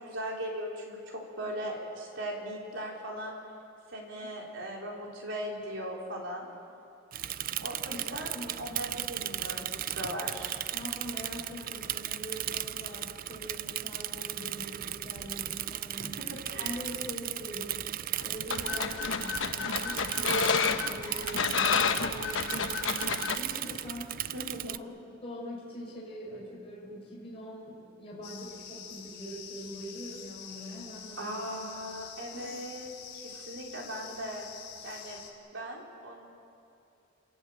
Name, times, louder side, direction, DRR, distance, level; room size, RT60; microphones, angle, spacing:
voice 1, 0.1-3.4 3.9-6.5 7.6-8.3 8.6-10.6 16.2-16.8 24.3-24.7 31.2-34.5 34.8-35.2 35.5-36.2, equal, 75° right, -2 dB, 4.5 m, -39 dB
Bicycle / Mechanisms, 7.1-24.8, right 12 dB, 50° right, 0.4 m, -36 dB
voice 2, 7.9-8.8 10.7-16.2 16.6-17.9 18.2-31.4 31.8-32.5, equal, 30° left, -5 dB, 6.2 m, -43 dB
sound 1, 18.2-23.4, left 6 dB, 90° left, 1.1 m, -30 dB
sound 2, 28.2-35.3, left 7 dB, 60° left, 3.2 m, -46 dB
28.5 x 14.5 x 9.0 m, 2.7 s
head